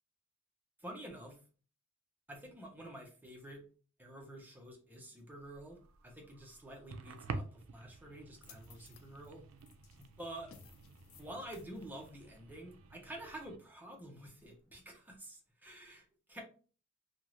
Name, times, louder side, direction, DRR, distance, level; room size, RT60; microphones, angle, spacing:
voice 1, 0.8-1.4 2.3-3.6 4.0-9.4 10.0-10.5 11.2-16.4, right 1 dB, 10° right, 1 dB, 0.7 m, -49 dB
sound 1, 5.4-13.6, right 3 dB, 80° right, 0.4 m, -49 dB
sound 2, 8.4-14.7, left 6 dB, 90° left, 0.5 m, -62 dB
2.7 x 2.4 x 3.0 m, 0.38 s
head